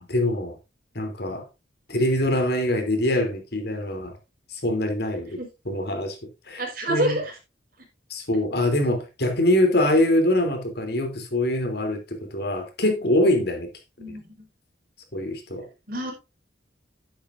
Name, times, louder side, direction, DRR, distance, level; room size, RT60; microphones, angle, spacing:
voice 1, 0.1-0.6 0.9-1.5 1.9-4.1 4.5-5.4 5.7-6.2 6.5-6.6 6.9-7.2 8.1-13.7 15.1-15.7, left 1 dB, 60° left, 3.2 m, -24 dB
voice 2, 6.6-7.3 14.0-14.5 15.9-16.1, right 1 dB, 50° right, 5.3 m, -28 dB
11.5 x 10.0 x 2.6 m
head